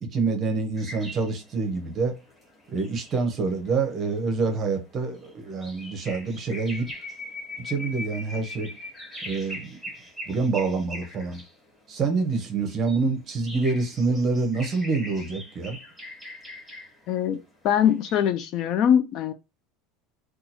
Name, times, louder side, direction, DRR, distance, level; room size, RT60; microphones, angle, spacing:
voice 1, 0.0-2.2 2.7-6.9 7.6-8.7 9.2-9.8 10.3-11.4 11.9-15.8, right 4 dB, 25° right, 0.7 m, -26 dB
sound 1, 0.8-11.5 12.1-17.0 17.9-18.3, left 1 dB, ahead, 1.5 m, -41 dB
voice 2, 17.1-17.4 17.6-19.3, left 9 dB, 35° left, 0.3 m, -22 dB
2.8 x 2.3 x 4.1 m
cardioid pair, 175°, 0 cm